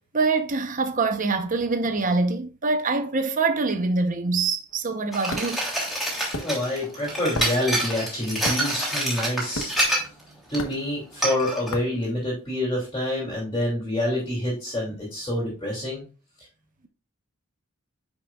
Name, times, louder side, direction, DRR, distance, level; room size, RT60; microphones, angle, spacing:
voice 1, 0.1-5.6, right 3 dB, 35° right, 0.8 m, -24 dB
sound 1, 4.7-12.8, left 1 dB, 70° left, 1.0 m, -37 dB
sound 2, 5.1-10.2 10.5-10.7 11.2-11.7, right 1 dB, ahead, 2.9 m, -27 dB
voice 2, 6.4-9.7 10.5-16.0, left 1 dB, 20° left, 2.9 m, -27 dB
9.6 x 5.9 x 2.4 m
head